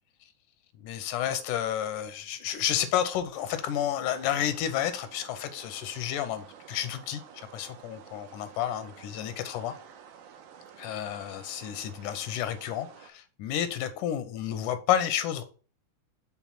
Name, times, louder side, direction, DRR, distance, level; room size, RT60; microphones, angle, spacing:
voice 1, 0.8-9.7 10.8-15.4, left 10 dB, 85° left, 2.2 m, -31 dB
sound 1, 3.3-13.1, right 8 dB, 80° right, 2.4 m, -51 dB
6.1 x 3.6 x 5.8 m
omnidirectional pair, 3.6 m